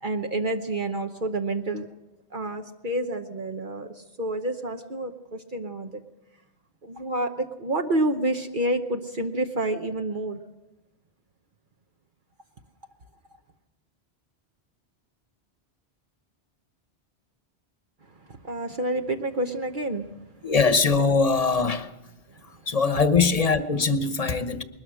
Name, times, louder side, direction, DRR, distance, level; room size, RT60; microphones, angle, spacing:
voice 1, 0.0-1.9 2.3-6.0 6.8-10.4 18.3-20.1, right 1 dB, 50° right, 1.1 m, -29 dB
voice 2, 20.4-21.9 22.7-24.6, left 4 dB, 35° left, 1.1 m, -22 dB
21.0 x 20.0 x 6.3 m
omnidirectional pair, 1.1 m